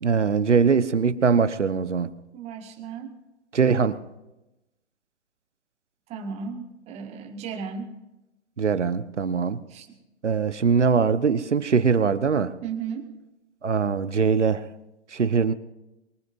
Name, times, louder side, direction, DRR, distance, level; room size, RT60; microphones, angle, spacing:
voice 1, 0.0-2.1 3.5-4.0 8.6-9.6 10.2-12.5 13.6-14.7 15.1-15.5, right 5 dB, 85° right, 13 dB, 1.2 m, -22 dB
voice 2, 2.3-3.1 6.1-8.0 9.7-10.0 12.6-13.1, right 6 dB, 20° right, 4 dB, 1.9 m, -35 dB
23.0 x 21.0 x 2.7 m, 0.96 s
hypercardioid pair, 135°, 35 cm